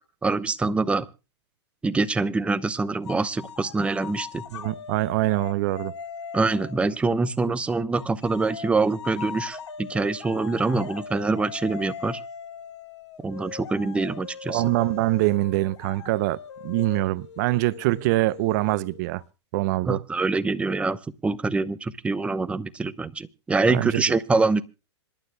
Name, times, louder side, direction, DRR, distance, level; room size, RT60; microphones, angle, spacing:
voice 1, 0.2-1.1 1.8-4.4 6.3-12.2 13.2-14.6 19.8-24.6, right 3 dB, 10° right, 0.7 m, -25 dB
sound 1, 3.1-7.0 7.9-19.3, left 6 dB, 75° left, 1.7 m, -40 dB
voice 2, 4.5-5.9 14.5-19.2 19.5-20.0 23.7-24.0, right 19 dB, 40° right, 0.5 m, -24 dB
26.5 x 12.0 x 2.2 m
hypercardioid pair, 135°, 15 cm